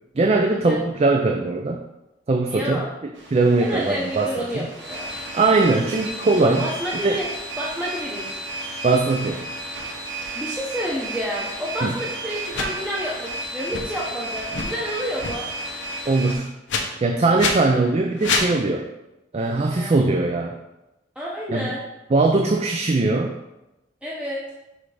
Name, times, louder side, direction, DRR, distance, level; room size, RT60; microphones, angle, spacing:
voice 1, 0.2-1.8 2.3-2.8 3.3-4.7 5.3-6.7 7.0-7.2 8.8-9.4 11.8-11.9 16.1-16.5 17.0-18.9 19.3-20.5 21.5-21.7 22.1-23.3, right 3 dB, 35° right, 3 dB, 0.4 m, -20 dB
voice 2, 2.5-2.9 3.6-5.1 6.4-7.3 7.6-8.4 10.3-15.5 19.5-19.9 21.2-21.8 24.0-24.4, equal, 5° right, -6 dB, 0.7 m, -29 dB
sound 1, 3.1-16.3, right 1 dB, 85° right, 1.2 m, -33 dB
sound 2, 12.5-12.7 13.7-13.8 14.4-14.7 15.2-15.3 16.7-16.8 17.4-17.6 18.2-18.5, left 4 dB, 80° left, 0.9 m, -24 dB
6.3 x 3.3 x 4.9 m, 0.95 s
head